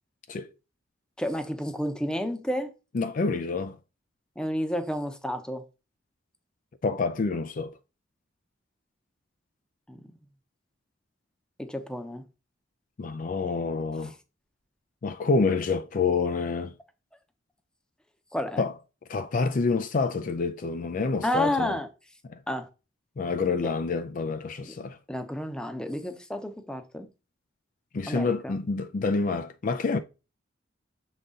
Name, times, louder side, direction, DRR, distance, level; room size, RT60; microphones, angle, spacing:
voice 1, 1.2-2.7 4.4-5.6 9.9-10.0 11.6-12.2 18.3-18.7 21.2-21.9 22.5-22.7 24.6-24.7 25.1-27.1 28.1-28.5, equal, 5° left, 0.8 m, -30 dB
voice 2, 2.9-3.8 6.8-7.7 13.0-14.1 15.0-16.7 18.6-18.7 19.1-21.7 23.2-25.0 27.9-30.0, left 4 dB, 45° left, 0.4 m, -27 dB
6.6 x 4.0 x 3.7 m
head